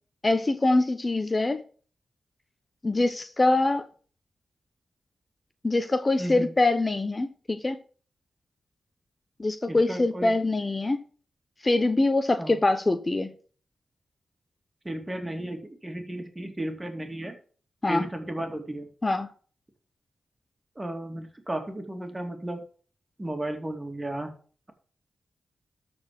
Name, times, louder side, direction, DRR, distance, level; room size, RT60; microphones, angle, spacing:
voice 1, 0.2-1.6 2.8-3.8 5.6-7.8 9.4-11.0 11.6-13.3 17.8-18.1 19.0-19.3, left 2 dB, 35° left, 10 dB, 0.8 m, -24 dB
voice 2, 6.2-6.5 9.7-10.3 12.4-12.6 14.8-17.3 17.9-18.9 20.8-22.6 23.2-24.3, right 1 dB, 20° right, 5 dB, 2.4 m, -34 dB
13.0 x 4.4 x 5.9 m, 0.42 s
cardioid pair, 50°, 0 cm